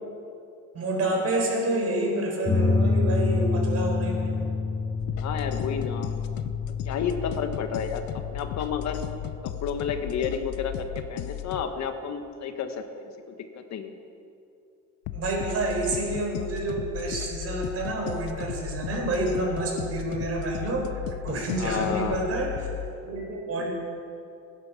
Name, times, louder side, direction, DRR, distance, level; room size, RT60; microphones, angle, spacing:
voice 1, 0.7-4.4 15.1-20.9 21.2-22.7 23.0-23.7, right 2 dB, 45° right, 0 dB, 4.3 m, -28 dB
sound 1, 2.5-9.4, left 3 dB, 15° left, 1.6 m, -28 dB
sound 2, 5.0-11.6 15.0-22.9, left 12 dB, 80° left, 0.7 m, -36 dB
voice 2, 5.2-6.1 6.8-8.0 8.3-9.0 9.4-14.0 21.6-22.3 23.6-23.7, left 7 dB, 55° left, 7 dB, 1.4 m, -31 dB
16.5 x 10.5 x 5.8 m, 2.6 s
cardioid pair, 110°, 33 cm